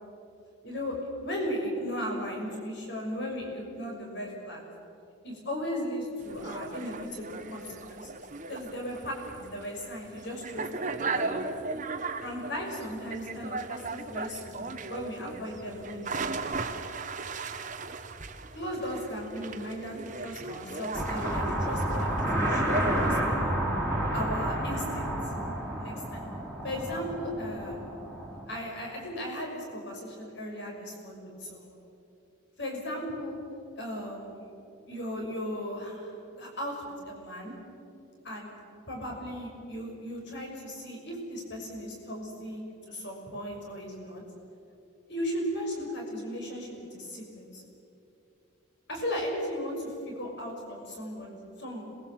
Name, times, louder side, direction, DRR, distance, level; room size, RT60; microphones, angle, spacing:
voice 1, 0.6-4.7 5.2-8.2 8.5-11.4 12.2-16.4 18.5-23.6 24.1-25.1 25.8-26.3 26.6-27.8 28.5-31.8 32.6-33.4 33.8-34.4 34.9-37.5 38.2-38.5 38.9-44.2 45.1-47.6 48.9-51.8, equal, 55° left, 0 dB, 6.3 m, -36 dB
sound 1, 6.2-23.2, right 3 dB, 35° right, 1.2 m, -37 dB
sound 2, 20.9-28.4, right 1 dB, 10° left, 4.0 m, -30 dB
26.5 x 21.0 x 7.7 m, 2.7 s
head